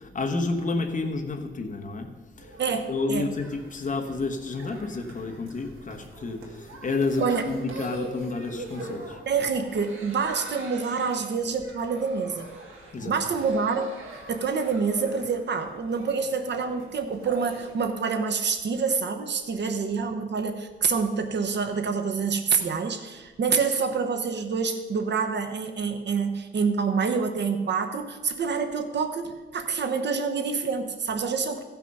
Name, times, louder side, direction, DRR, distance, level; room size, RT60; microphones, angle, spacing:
voice 1, 0.0-2.6 2.9-9.2 12.9-13.1, left 3 dB, 40° left, 4 dB, 1.2 m, -30 dB
sound 1, 2.4-17.9, right 2 dB, 75° right, 2.2 m, -43 dB
voice 2, 2.6-3.3 7.2-7.5 9.3-12.5 13.1-13.9 14.3-31.6, right 5 dB, 55° right, 6 dB, 1.0 m, -27 dB
15.0 x 6.0 x 5.4 m, 1.3 s
wide cardioid pair, 135°, 21 cm